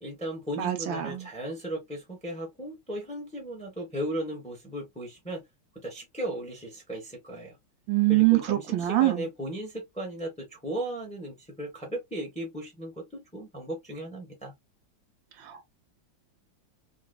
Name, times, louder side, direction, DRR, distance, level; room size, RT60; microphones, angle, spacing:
voice 1, 0.0-5.4 5.7-7.5 8.1-14.5, right 1 dB, 5° left, 1.0 m, -36 dB
voice 2, 0.6-1.3 7.9-9.3 15.4-15.7, right 17 dB, 75° right, 1.3 m, -24 dB
3.9 x 2.4 x 2.2 m
omnidirectional pair, 2.2 m